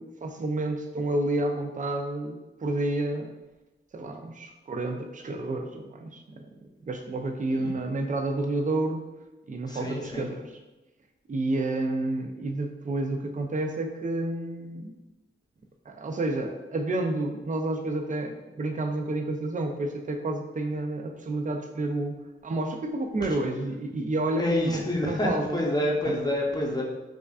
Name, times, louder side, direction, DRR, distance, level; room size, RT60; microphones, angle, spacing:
voice 1, 0.0-3.3 3.9-6.5 6.8-9.0 9.5-10.6 11.3-14.9 15.9-25.6 26.0-26.1, right 2 dB, 35° right, 4 dB, 0.5 m, -30 dB
voice 2, 9.7-10.3 24.4-26.8, left 1 dB, 20° left, -1 dB, 0.7 m, -28 dB
4.9 x 2.4 x 2.4 m, 1.1 s
cardioid pair, 55°, 21 cm